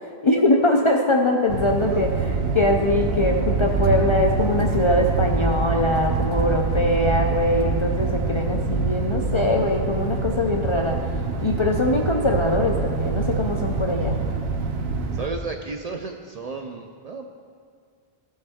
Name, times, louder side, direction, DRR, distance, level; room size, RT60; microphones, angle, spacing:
voice 1, 0.2-2.1 2.5-11.0 11.4-14.2, left 2 dB, 45° left, 1 dB, 0.4 m, -22 dB
sound 1, 1.5-15.3, right 4 dB, 75° right, 0.9 m, -25 dB
voice 2, 15.1-17.3, right 4 dB, 55° right, 3 dB, 0.5 m, -32 dB
14.5 x 5.5 x 3.5 m, 2.1 s
omnidirectional pair, 1.0 m